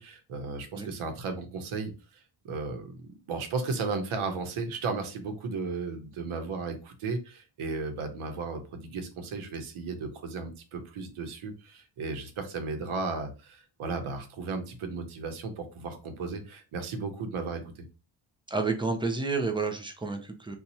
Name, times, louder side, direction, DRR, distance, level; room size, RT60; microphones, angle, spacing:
voice 1, 0.0-17.8, right 4 dB, 80° right, 6 dB, 0.9 m, -35 dB
voice 2, 18.5-20.6, right 4 dB, 10° right, 4 dB, 0.5 m, -30 dB
2.8 x 2.4 x 4.0 m, 0.32 s
cardioid pair, 115°, 49 cm